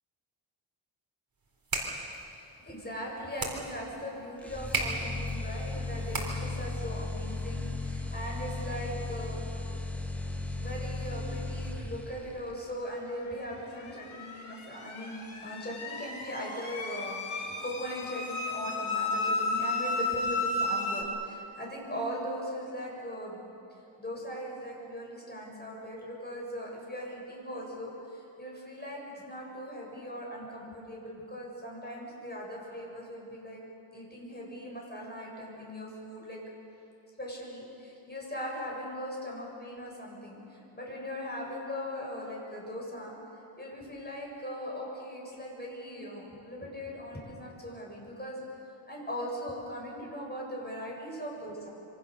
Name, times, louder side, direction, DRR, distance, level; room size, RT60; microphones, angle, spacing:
sound 1, 1.4-6.7, right 2 dB, 45° right, 4.0 m, -37 dB
voice 1, 2.3-9.4 10.6-23.4 24.0-33.6 33.9-36.4 37.2-43.1 43.6-48.4 48.9-51.7, equal, 20° left, -3 dB, 7.1 m, -39 dB
sound 2, 4.4-12.4, left 2 dB, 5° left, 1.5 m, -36 dB
sound 3, 13.4-21.0, left 2 dB, 75° left, 4.0 m, -33 dB
26.5 x 25.0 x 6.9 m, 2.7 s
wide cardioid pair, 135°, 49 cm